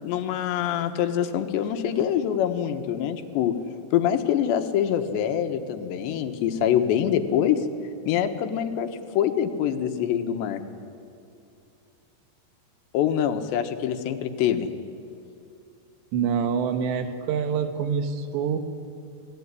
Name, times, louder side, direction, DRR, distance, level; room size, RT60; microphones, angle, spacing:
voice 1, 0.0-3.6 3.9-7.7 8.1-10.6 12.9-14.7, left 9 dB, 80° left, 7 dB, 3.5 m, -25 dB
voice 2, 16.1-18.6, right 7 dB, 80° right, 8 dB, 3.6 m, -26 dB
29.5 x 19.0 x 9.7 m, 2.6 s
omnidirectional pair, 5.0 m